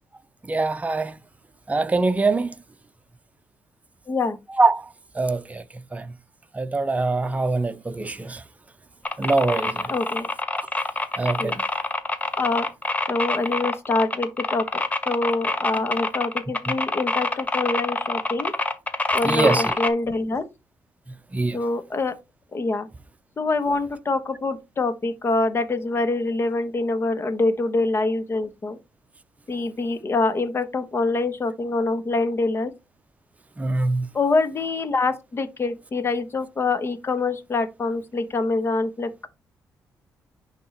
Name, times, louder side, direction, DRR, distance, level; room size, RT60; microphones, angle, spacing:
voice 1, 0.4-1.2 1.7-2.5 4.6-4.9 5.1-5.6 5.9-6.1 6.5-8.4 9.2-9.9 11.2-11.6 15.8-16.0 16.7-16.8 19.2-19.8 21.3-21.6 33.6-34.1, right 3 dB, 20° right, 0.7 m, -23 dB
voice 2, 4.1-4.4 9.9-10.3 11.4-11.6 12.4-12.7 13.1-18.5 19.1-20.4 21.5-22.1 22.5-22.9 23.4-28.8 29.5-32.7 34.1-39.3, left 3 dB, 40° left, 1.3 m, -25 dB
sound 1, 9.1-19.9, left 2 dB, 20° left, 1.0 m, -26 dB
10.5 x 3.7 x 2.9 m
supercardioid pair, 65°, 7 cm